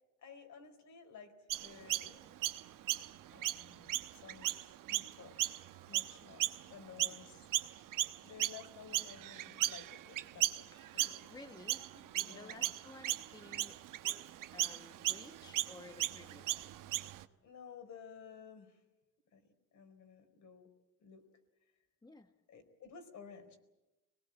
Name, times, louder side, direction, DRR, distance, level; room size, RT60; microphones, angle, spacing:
voice 1, 0.2-2.4 3.3-5.5 5.9-7.8 8.2-11.3 11.9-12.7 13.4-13.7 14.0-14.2 17.4-18.8 19.3-19.4 19.7-20.7 21.0-21.2 22.5-23.6, left 6 dB, 60° left, 6 dB, 4.4 m, -54 dB
Chirp tweet, 1.5-7.2 7.5-17.2, right 14 dB, 75° right, 1.2 m, -37 dB
voice 2, 10.9-11.8 12.3-13.8 14.5-16.7 22.0-22.3, left 2 dB, 15° left, 6 dB, 1.3 m, -54 dB
25.0 x 19.0 x 8.9 m, 1.0 s
cardioid pair, 130°, 32 cm